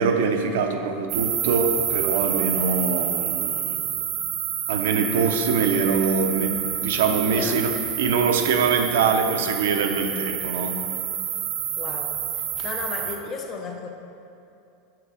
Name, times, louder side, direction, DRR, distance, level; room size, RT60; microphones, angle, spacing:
voice 1, 0.0-3.8 4.7-7.7 8.0-10.8, right 5 dB, 80° right, 5 dB, 0.8 m, -23 dB
sound 1, 1.1-13.2, right 9 dB, 45° right, 0.7 m, -28 dB
voice 2, 11.7-13.9, left 4 dB, 25° left, 4 dB, 0.7 m, -34 dB
7.7 x 5.9 x 4.9 m, 2.6 s
supercardioid pair, 170°, 0 cm